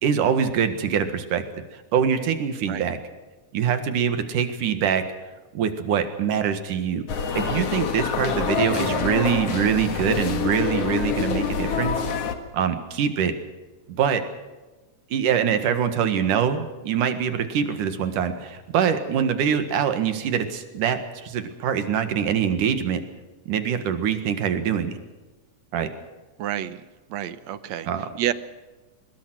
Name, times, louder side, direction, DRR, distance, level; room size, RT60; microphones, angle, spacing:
voice 1, 0.0-1.4 1.9-3.0 3.5-5.0 5.5-7.0 7.4-11.9 12.5-13.3 13.9-14.2 15.1-23.0 23.5-25.0 25.7-25.9 27.9-28.0, right 8 dB, 85° right, 8 dB, 3.2 m, -24 dB
sound 1, 7.1-12.4, left 6 dB, 55° left, 2.5 m, -26 dB
voice 2, 26.4-26.8 27.1-27.9 28.2-28.3, right 11 dB, 70° right, 13 dB, 2.0 m, -28 dB
23.0 x 21.5 x 6.2 m, 1.2 s
omnidirectional pair, 3.6 m